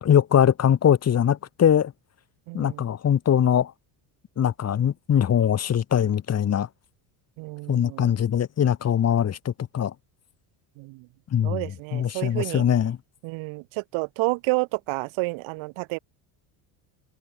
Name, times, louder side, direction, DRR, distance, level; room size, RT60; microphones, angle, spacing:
voice 1, 0.0-1.9 2.5-3.7 4.4-6.7 7.7-9.9 11.3-13.0, left 9 dB, 30° left, 1.4 m, -22 dB
voice 2, 2.5-2.8 7.4-8.1 10.8-11.1 11.4-12.6 13.2-16.0, right 25 dB, 70° right, 2.5 m, -30 dB
supercardioid pair, 110°, 48 cm